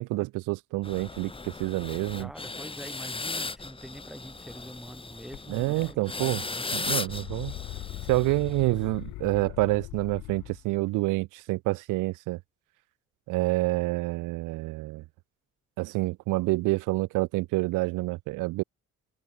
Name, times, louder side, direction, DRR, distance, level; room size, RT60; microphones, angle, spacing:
voice 1, 0.0-2.3 5.5-6.4 6.7-7.6 8.1-12.4 13.3-15.0 15.8-18.6, right 21 dB, 90° right, 0.5 m, -28 dB
sound 1, 0.8-8.8, left 3 dB, 20° left, 1.6 m, -37 dB
voice 2, 2.2-6.9, equal, ahead, 5.8 m, -44 dB
sound 2, 5.3-5.4 5.8-6.4 6.7-10.6, left 18 dB, 85° left, 0.7 m, -41 dB
cardioid pair, 90°, 30 cm